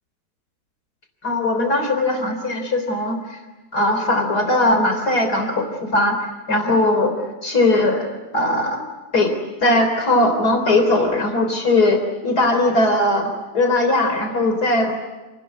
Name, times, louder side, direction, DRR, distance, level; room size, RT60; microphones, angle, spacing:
voice 1, 1.2-3.4 3.7-7.1 7.4-8.1 8.3-8.8 9.1-9.3 9.6-14.9, left 2 dB, 65° left, 5 dB, 4.3 m, -19 dB
29.5 x 20.5 x 9.5 m, 1.1 s
omnidirectional pair, 1.8 m